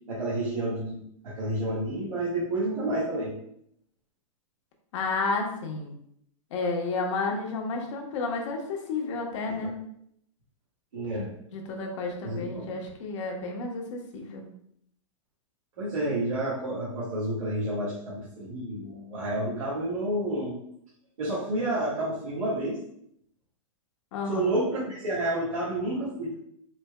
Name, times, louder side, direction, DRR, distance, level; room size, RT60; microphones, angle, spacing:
voice 1, 0.1-3.4 9.6-9.7 10.9-11.3 12.2-12.7 15.8-20.5 21.2-22.8 24.3-26.3, right 1 dB, 80° right, -8 dB, 1.4 m, -30 dB
voice 2, 4.9-5.9 6.5-9.8 11.5-14.5 24.1-24.6, left 3 dB, 60° left, 1 dB, 1.0 m, -31 dB
4.4 x 3.3 x 2.2 m, 0.71 s
hypercardioid pair, 125°, 18 cm